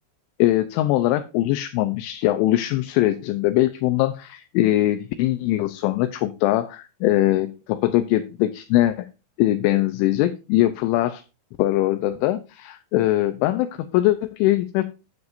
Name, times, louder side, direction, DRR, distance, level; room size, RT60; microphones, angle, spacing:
voice 1, 0.4-9.1 9.4-11.2 11.6-14.8, left 15 dB, 80° left, 10 dB, 2.8 m, -21 dB
10.5 x 9.5 x 2.6 m, 0.29 s
omnidirectional pair, 5.8 m